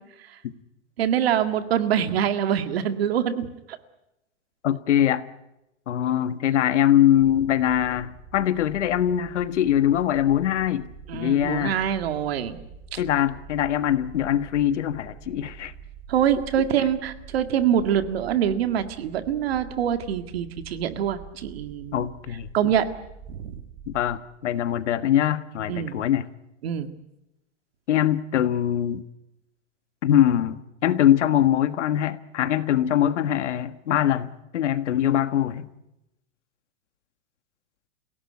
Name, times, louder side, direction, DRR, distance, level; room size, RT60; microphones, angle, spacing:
voice 1, 1.0-3.5 11.1-12.6 12.9-13.0 16.1-22.1 22.5-22.8 23.3-23.6 25.7-26.0 26.6-26.9, right 9 dB, 55° right, 9 dB, 2.0 m, -24 dB
voice 2, 4.6-5.3 5.9-11.7 13.0-15.7 21.9-22.5 23.9-26.3 27.9-29.0 30.0-35.7, left 11 dB, 70° left, 12 dB, 1.6 m, -22 dB
sound 1, 7.1-24.2, right 6 dB, 35° right, 5.2 m, -45 dB
28.0 x 17.0 x 9.7 m, 0.92 s
supercardioid pair, 180°, 37 cm